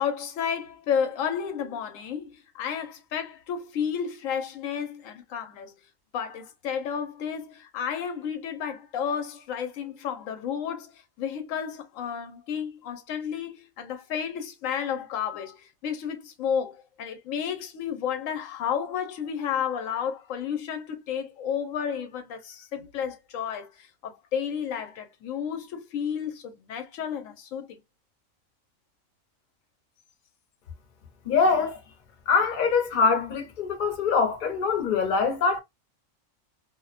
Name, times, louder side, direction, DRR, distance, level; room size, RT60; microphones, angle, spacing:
voice 1, 0.0-5.7 6.1-27.8, left 7 dB, 80° left, 1.0 m, -32 dB
voice 2, 31.2-31.8 32.3-35.6, left 5 dB, 50° left, 0.7 m, -23 dB
2.5 x 2.1 x 2.4 m
omnidirectional pair, 1.4 m